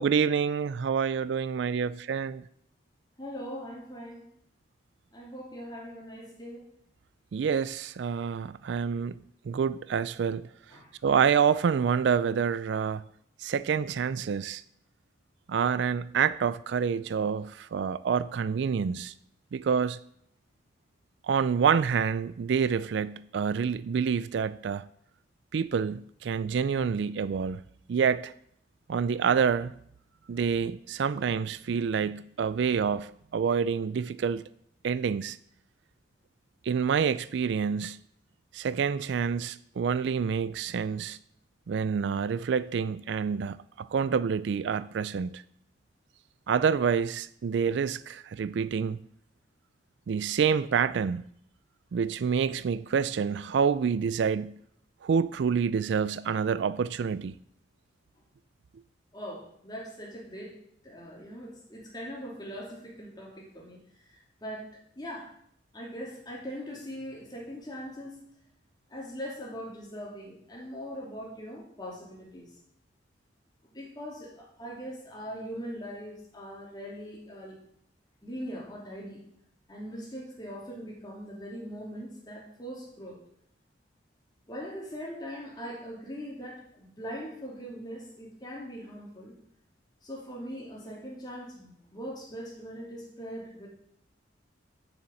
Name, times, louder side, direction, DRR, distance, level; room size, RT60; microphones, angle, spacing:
voice 1, 0.0-2.4 7.3-9.2 9.5-10.5 11.0-13.0 13.4-14.6 15.5-19.1 19.5-20.0 21.2-24.9 25.5-27.6 27.9-28.3 28.9-29.7 30.3-34.4 34.8-35.4 36.6-38.0 38.5-41.2 41.7-45.4 46.5-49.0 50.1-51.2 51.9-54.6 55.0-57.3, right 6 dB, 65° right, 0.3 m, -27 dB
voice 2, 3.2-4.3 5.1-6.7 10.7-10.9 59.1-60.5 60.8-63.8 64.1-65.3 65.7-68.2 68.9-72.5 73.7-77.6 78.2-79.2 79.7-83.2 84.5-89.3 90.0-93.7, equal, 20° left, 2.9 m, -41 dB
7.1 x 7.0 x 7.7 m
head